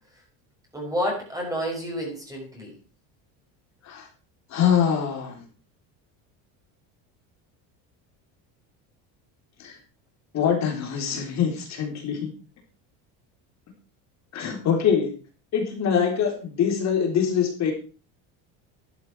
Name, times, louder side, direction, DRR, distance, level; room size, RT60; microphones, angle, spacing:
voice 1, 0.7-2.8, equal, 10° right, -1 dB, 5.5 m, -29 dB
voice 2, 4.5-5.4 9.6-9.7 10.3-12.3 14.3-15.1 15.5-17.7, left 7 dB, 40° left, 3 dB, 3.8 m, -24 dB
12.0 x 11.0 x 4.7 m, 0.35 s
cardioid pair, 140°, 40 cm